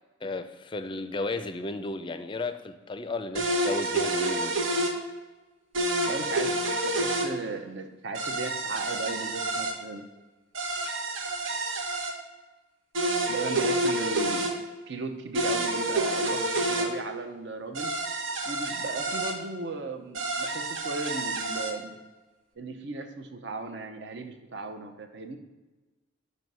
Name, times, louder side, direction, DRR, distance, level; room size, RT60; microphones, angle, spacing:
voice 1, 0.2-4.6, left 2 dB, 25° left, 10 dB, 0.4 m, -34 dB
sound 1, 3.3-4.9 5.7-7.3 8.1-9.7 10.5-12.1 12.9-14.5 15.3-16.9 17.7-19.3 20.1-21.7, right 1 dB, 80° right, 1.0 m, -28 dB
voice 2, 6.0-10.1 13.3-14.5 14.9-17.9 18.4-22.0 22.6-25.4, right 3 dB, 60° right, 6 dB, 0.7 m, -36 dB
6.2 x 5.4 x 5.4 m, 1.2 s
head